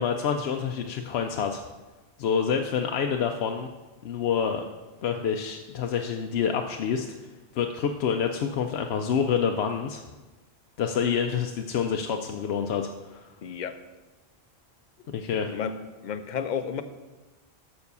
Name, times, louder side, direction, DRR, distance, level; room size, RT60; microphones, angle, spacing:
voice 1, 0.0-1.6 2.2-3.7 4.0-4.6 5.0-7.1 7.5-10.0 10.8-13.3 15.1-15.5, left 7 dB, 80° left, 3 dB, 0.8 m, -27 dB
voice 2, 13.4-13.8 15.5-15.7 16.0-16.8, left 7 dB, 50° left, 10 dB, 0.7 m, -31 dB
7.0 x 6.2 x 6.7 m, 1.2 s
omnidirectional pair, 1.1 m